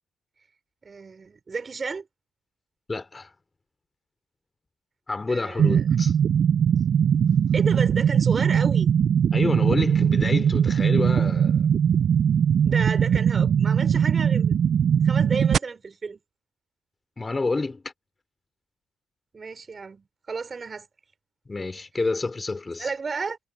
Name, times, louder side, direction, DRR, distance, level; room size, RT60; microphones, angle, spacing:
voice 1, 0.8-2.1 5.3-5.8 7.5-8.9 12.6-14.5 15.0-16.2 19.3-20.9 22.8-23.4, right 4 dB, 35° right, 3.9 m, -32 dB
voice 2, 2.9-3.3 5.1-6.1 9.3-11.7 17.2-17.9 21.5-22.9, left 3 dB, 25° left, 3.2 m, -29 dB
sound 1, 5.6-15.6, right 8 dB, 60° right, 0.3 m, -20 dB
cardioid pair, 90°, 0 cm